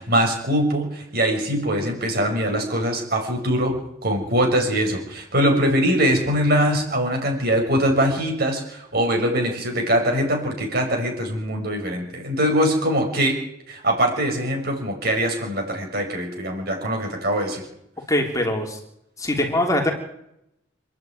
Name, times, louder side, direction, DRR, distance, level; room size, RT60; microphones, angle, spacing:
voice 1, 0.0-3.8 4.0-13.4 13.7-17.6, equal, 55° right, 2 dB, 6.3 m, -22 dB
voice 2, 18.1-18.8 19.2-19.9, left 1 dB, 20° left, 1 dB, 3.3 m, -22 dB
26.5 x 10.5 x 9.4 m, 0.79 s
head